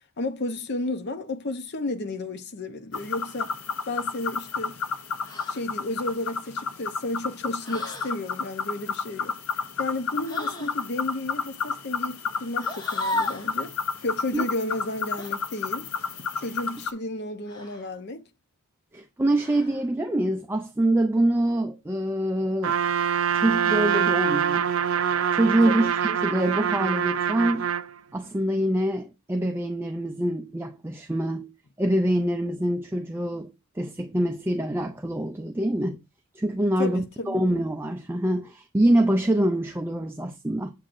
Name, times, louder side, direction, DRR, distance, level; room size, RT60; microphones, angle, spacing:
voice 1, 0.2-3.5 3.9-4.8 5.5-9.3 9.8-13.7 14.0-15.9 16.4-18.3 25.6-25.9 36.8-37.4, left 2 dB, 55° left, 0.7 m, -32 dB
sound 1, 2.9-16.9, left 5 dB, 90° left, 0.9 m, -31 dB
sound 2, 5.2-5.6 7.6-8.2 10.2-10.8 12.6-13.5 15.2-15.4 17.5-18.0 19.4-19.9, left 1 dB, 20° left, 1.1 m, -35 dB
voice 2, 18.9-22.8 23.3-24.7 25.1-27.7 28.1-31.5 31.8-36.0 36.3-40.7, right 1 dB, 10° right, 0.4 m, -25 dB
Trumpet, 22.6-27.9, right 8 dB, 80° right, 0.5 m, -24 dB
7.5 x 7.4 x 2.6 m
head